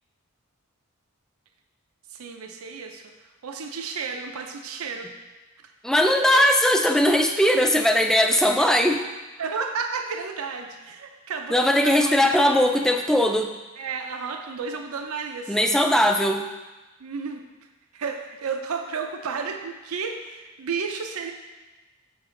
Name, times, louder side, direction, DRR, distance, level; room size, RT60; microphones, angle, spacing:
voice 1, 2.1-5.1 5.6-5.7 6.3-6.5 9.4-12.3 12.7-12.9 13.8-15.6 17.0-21.3, right 5 dB, 85° right, 5 dB, 0.5 m, -32 dB
voice 2, 5.8-9.0 11.5-13.5 15.5-16.4, left 1 dB, ahead, 4 dB, 0.4 m, -19 dB
6.3 x 6.0 x 3.8 m, 1.2 s
head